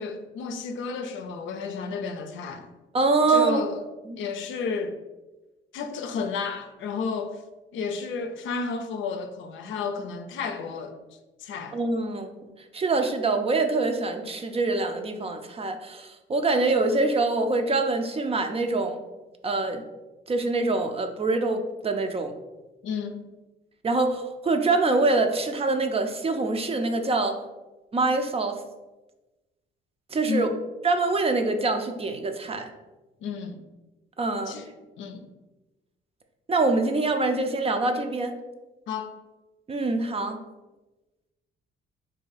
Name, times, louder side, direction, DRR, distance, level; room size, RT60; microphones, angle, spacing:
voice 1, 0.0-2.7 3.3-3.8 4.2-5.0 5.7-7.4 7.7-11.0 11.4-11.8 22.8-23.3 30.3-30.6 33.2-33.6 34.5-35.3 38.9-39.1, left 5 dB, 75° left, 7 dB, 0.5 m, -32 dB
voice 2, 2.9-3.6 4.1-4.2 11.7-19.0 19.4-19.8 20.3-22.3 23.8-27.4 27.9-28.6 30.1-30.5 30.8-32.7 34.2-34.6 36.5-38.3 39.7-40.4, right 3 dB, 30° right, 6 dB, 0.5 m, -25 dB
3.9 x 2.6 x 3.9 m, 1.1 s
cardioid pair, 90°, 20 cm